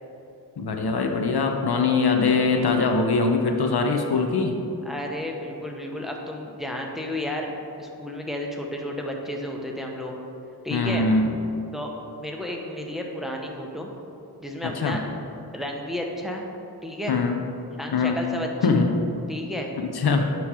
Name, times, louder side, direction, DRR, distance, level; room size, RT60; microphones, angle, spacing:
voice 1, 0.6-4.6 10.7-11.3 14.6-15.0 17.1-17.4 17.9-18.2 18.6-18.9 19.8-20.3, left 4 dB, 70° left, 4 dB, 0.6 m, -22 dB
voice 2, 4.8-10.1 10.6-11.1 11.7-11.9 12.2-13.9 14.4-15.0 15.5-16.4 16.8-17.1 17.7-18.5 19.3-19.7, left 1 dB, ahead, 0 dB, 0.7 m, -32 dB
9.0 x 3.1 x 4.8 m, 2.7 s
wide cardioid pair, 70°, 40 cm